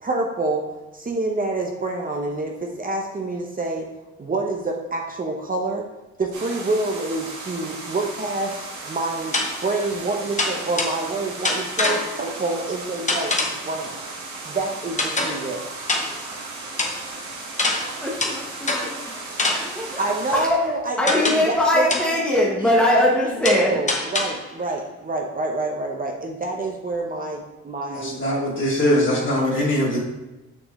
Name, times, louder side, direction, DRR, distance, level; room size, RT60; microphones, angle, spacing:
voice 1, 0.0-0.7 0.9-3.9 4.2-5.9 6.2-14.0 14.4-15.7 20.0-28.3, right 2 dB, 30° right, 1 dB, 0.8 m, -27 dB
sound 1, 6.3-20.5, right 3 dB, 70° right, 1.7 m, -36 dB
sound 2, 7.9-8.0 9.3-9.7 10.4-11.1 11.4-12.3 13.1-13.7 15.0-15.5 15.9-16.4 16.8-17.0 17.6-19.0 19.4-19.9 21.1-21.6 21.9-22.2 23.5-24.5, left 2 dB, 25° left, 1.0 m, -25 dB
voice 2, 18.0-19.2 19.7-23.8, left 1 dB, 5° left, -4 dB, 1.2 m, -22 dB
voice 3, 28.0-30.0, left 1 dB, 40° left, -4 dB, 2.5 m, -21 dB
6.3 x 6.0 x 3.2 m, 1.0 s
cardioid pair, 90°, 30 cm